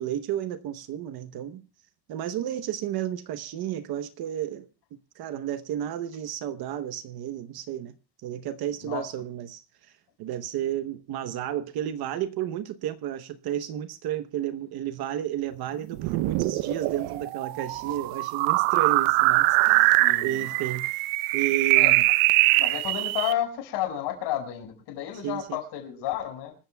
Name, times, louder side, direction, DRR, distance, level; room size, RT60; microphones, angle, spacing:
voice 1, 0.0-1.6 2.1-4.7 5.1-7.9 8.2-9.9 10.2-21.1 21.3-22.0 25.1-25.6, right 11 dB, 50° right, 1.0 m, -32 dB
sound 1, 15.9-23.3, right 20 dB, 80° right, 0.8 m, -23 dB
voice 2, 19.8-20.5 21.8-22.0 22.6-26.5, left 11 dB, 55° left, 5.5 m, -32 dB
26.0 x 14.0 x 2.3 m
cardioid pair, 165°, 48 cm